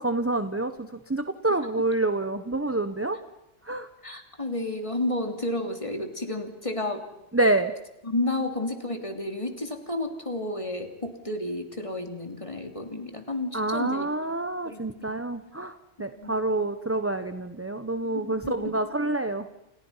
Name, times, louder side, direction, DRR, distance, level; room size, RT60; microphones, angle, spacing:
voice 1, 0.0-3.2 3.6-3.9 7.3-7.7 13.5-19.5, right 2 dB, 10° right, 9 dB, 1.0 m, -27 dB
voice 2, 4.0-7.1 8.0-14.1 14.6-15.2 16.0-16.4 18.0-18.7, left 2 dB, 25° left, 5 dB, 3.1 m, -31 dB
29.0 x 29.0 x 5.8 m, 0.83 s
omnidirectional pair, 1.2 m